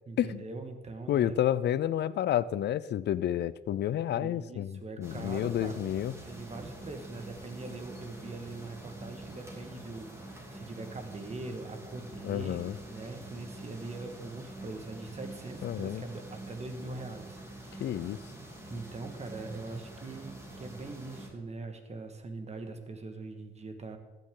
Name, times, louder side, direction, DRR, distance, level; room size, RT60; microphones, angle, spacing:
voice 1, 0.1-1.4 4.1-5.8 6.2-18.0 18.6-24.0, right 3 dB, 35° right, 6 dB, 1.7 m, -42 dB
voice 2, 1.1-6.1 12.2-12.8 15.6-16.0 17.8-18.2, left 11 dB, 60° left, 18 dB, 0.5 m, -30 dB
sound 1, 5.0-21.3, right 1 dB, 15° right, 3.1 m, -46 dB
14.5 x 9.3 x 3.8 m, 1.2 s
cardioid pair, 90°, 20 cm